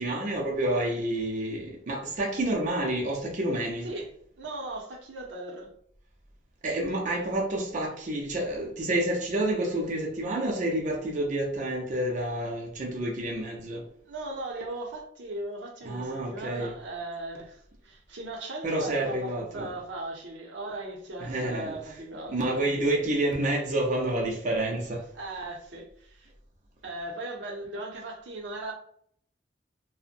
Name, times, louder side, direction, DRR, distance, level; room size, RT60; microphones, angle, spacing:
voice 1, 0.0-3.9 6.6-13.9 15.8-16.7 18.6-19.7 21.2-21.8 22.3-25.0, right 1 dB, 45° right, 0.5 m, -29 dB
voice 2, 3.8-5.7 14.0-23.1 25.1-26.3 26.8-28.7, right 2 dB, 90° right, 0.6 m, -38 dB
2.6 x 2.1 x 2.5 m
head